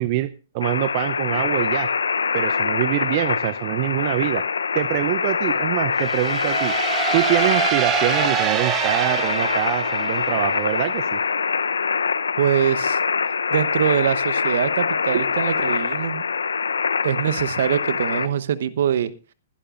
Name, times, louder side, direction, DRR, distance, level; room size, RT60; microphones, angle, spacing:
voice 1, 0.0-1.9 2.3-4.4 4.7-6.7 7.1-11.2, right 16 dB, 45° right, 15 dB, 0.6 m, -24 dB
sound 1, 0.6-18.3, left 5 dB, 85° left, 0.7 m, -24 dB
sound 2, 6.0-10.7, right 9 dB, 25° right, 1.3 m, -25 dB
voice 2, 12.4-13.0 13.5-16.2 17.0-19.1, right 9 dB, 65° right, 16 dB, 1.0 m, -23 dB
21.5 x 11.5 x 2.5 m, 0.33 s
hypercardioid pair, 120°, 0 cm